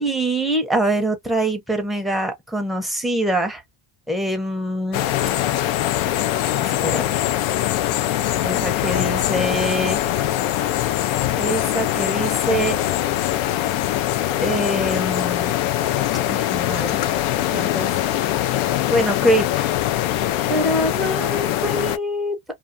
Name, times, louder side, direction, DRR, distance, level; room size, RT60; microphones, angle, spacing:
voice 1, 0.0-3.6 4.1-5.0 6.8-7.3 8.4-10.0 11.4-12.8 14.4-15.5 16.3-17.0 17.5-17.9 18.9-19.7 20.4-22.4, right 1 dB, ahead, 0.5 m, -24 dB
sound 1, 4.9-22.0, left 13 dB, 85° left, 0.6 m, -22 dB
2.4 x 2.3 x 2.5 m
cardioid pair, 125°, 48 cm